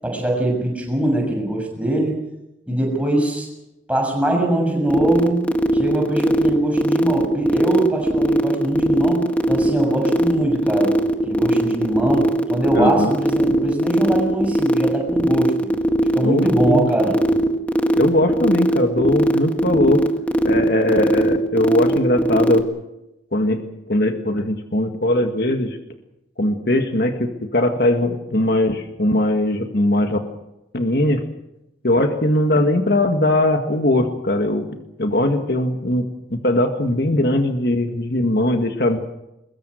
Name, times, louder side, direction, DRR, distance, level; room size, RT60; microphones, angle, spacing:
voice 1, 0.0-2.1 2.7-3.5 3.9-5.4 5.7-10.9 11.2-15.7 16.1-17.2, right 1 dB, 5° right, 1 dB, 6.9 m, -22 dB
sound 1, 4.9-22.6, right 1 dB, 10° left, 1.7 m, -18 dB
voice 2, 12.8-13.2 16.2-16.9 18.0-20.0 20.4-22.7 23.3-23.6 23.9-25.8 26.4-30.2 30.7-31.2 31.8-39.0, left 1 dB, 55° left, 5 dB, 1.9 m, -20 dB
23.0 x 22.0 x 6.5 m, 0.90 s
head